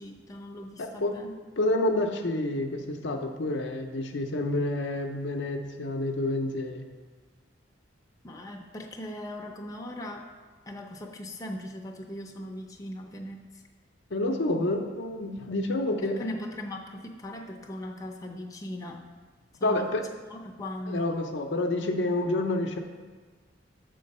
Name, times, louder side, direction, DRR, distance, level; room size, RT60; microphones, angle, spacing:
voice 1, 0.0-1.3 8.2-10.3 10.7-13.4 16.0-19.0 19.6-19.9 20.3-21.0, left 1 dB, 20° left, 0 dB, 0.6 m, -39 dB
voice 2, 0.8-1.1 1.6-6.8 14.1-16.2 19.6-20.0 20.9-22.8, left 1 dB, 75° left, 4 dB, 0.6 m, -28 dB
7.4 x 3.8 x 5.4 m, 1.4 s
head